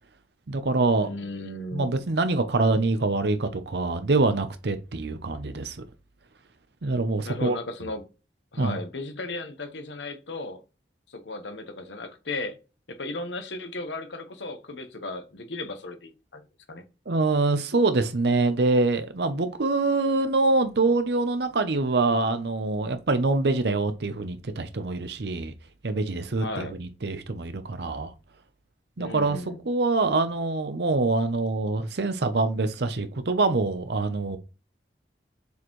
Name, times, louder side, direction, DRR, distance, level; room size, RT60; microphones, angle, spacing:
voice 1, 0.5-1.1 1.7-5.8 6.8-7.5 8.6-8.8 17.1-25.5 25.8-28.1 29.0-29.4 29.7-34.4, right 3 dB, 70° right, 0.7 m, -25 dB
voice 2, 1.0-2.0 7.2-8.0 8.5-10.6 11.1-12.6 12.9-16.4 16.7-16.8 26.4-26.8 29.0-29.6, left 2 dB, 85° left, 1.1 m, -35 dB
7.0 x 4.3 x 3.1 m
head